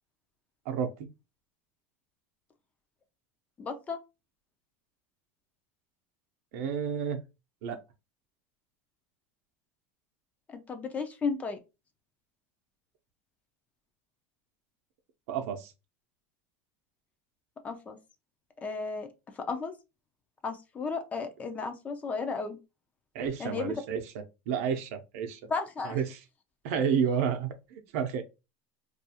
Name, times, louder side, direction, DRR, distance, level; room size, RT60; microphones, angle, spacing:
voice 1, 0.7-1.1 6.5-7.2 7.6-7.8 15.3-15.7 23.1-25.4 25.8-26.2 26.6-28.2, right 7 dB, 70° right, 0.5 m, -31 dB
voice 2, 3.6-4.0 10.5-11.6 17.6-18.0 18.6-19.1 19.4-19.7 20.4-22.6 23.4-23.7 25.5-26.0, left 4 dB, 20° left, 0.4 m, -34 dB
2.4 x 2.3 x 2.7 m
supercardioid pair, 155°, 8 cm